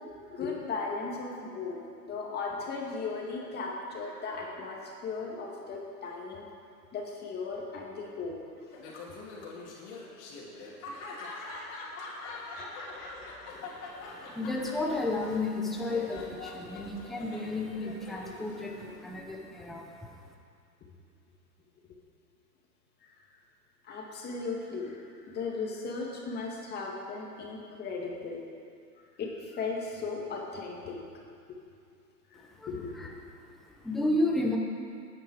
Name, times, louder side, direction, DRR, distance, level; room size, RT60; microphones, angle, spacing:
voice 1, 0.3-1.8 2.0-6.4 6.9-8.3 11.9-12.0 12.4-13.4 23.8-25.0 25.3-28.4 29.2-31.0 32.3-32.4 32.7-33.1, left 4 dB, 20° left, -1 dB, 2.1 m, -37 dB
Laughter, 8.7-19.1, left 3 dB, 35° left, 3.1 m, -44 dB
voice 2, 13.5-20.2 32.3-33.1 33.4-33.5 33.8-34.6, left 2 dB, ahead, -1 dB, 0.5 m, -33 dB
18.5 x 9.5 x 4.8 m, 2.3 s
hypercardioid pair, 135°, 49 cm